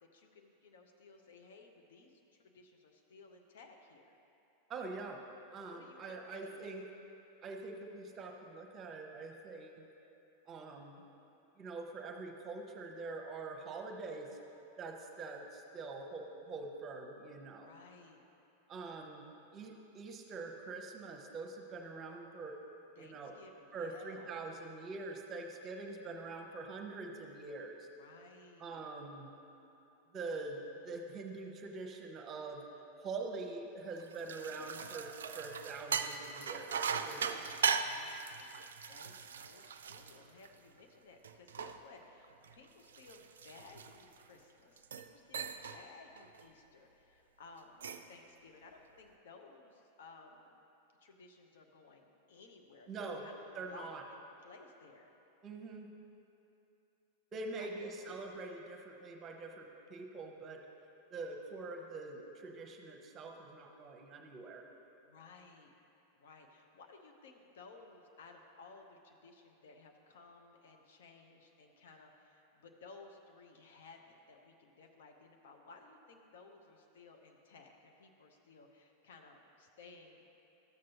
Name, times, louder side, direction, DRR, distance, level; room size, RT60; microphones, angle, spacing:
voice 1, 0.0-4.2 5.7-6.7 17.6-18.2 23.0-24.4 28.0-28.8 37.2-50.6 51.0-55.1 57.6-58.4 65.1-65.7 66.2-80.2, left 3 dB, 60° left, 3 dB, 0.7 m, -58 dB
voice 2, 4.7-5.2 5.5-6.8 7.4-9.8 10.5-11.0 11.6-14.3 14.8-17.7 18.7-22.6 23.0-23.3 23.7-27.9 28.6-29.3 30.1-32.6 33.0-37.5 52.9-53.2 53.5-54.0 55.4-55.9 57.3-60.6 61.1-64.6, right 3 dB, 30° right, 2 dB, 0.9 m, -44 dB
sound 1, 34.0-40.8 41.2-44.3 44.8-45.1 45.3-45.8 46.2-46.4 47.6-48.1, right 6 dB, 65° right, 0.4 m, -39 dB
13.0 x 7.5 x 2.9 m, 2.8 s
figure-of-eight pair, 90°, 0 cm